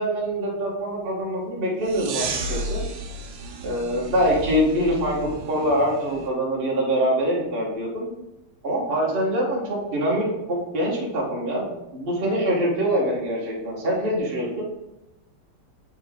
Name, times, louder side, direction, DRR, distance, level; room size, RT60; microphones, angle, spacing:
voice 1, 0.0-2.8 3.6-8.1 8.6-11.7 11.9-14.6, equal, 30° right, -5 dB, 1.3 m, -24 dB
sound 1, 1.8-6.3, right 2 dB, 80° right, 1.6 m, -33 dB
8.1 x 4.1 x 3.6 m, 0.96 s
omnidirectional pair, 2.3 m